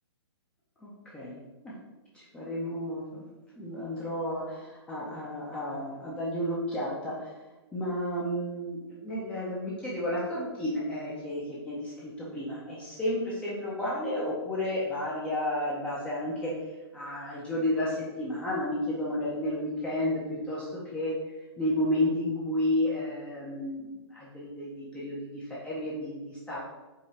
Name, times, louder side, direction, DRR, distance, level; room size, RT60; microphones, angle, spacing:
voice 1, 0.8-1.4 1.6-1.7 2.1-3.3 3.6-7.3 7.7-16.5 16.9-21.1 21.6-26.7, left 1 dB, 5° left, -7 dB, 0.6 m, -32 dB
4.8 x 2.3 x 4.1 m, 1.1 s
hypercardioid pair, 150°, 14 cm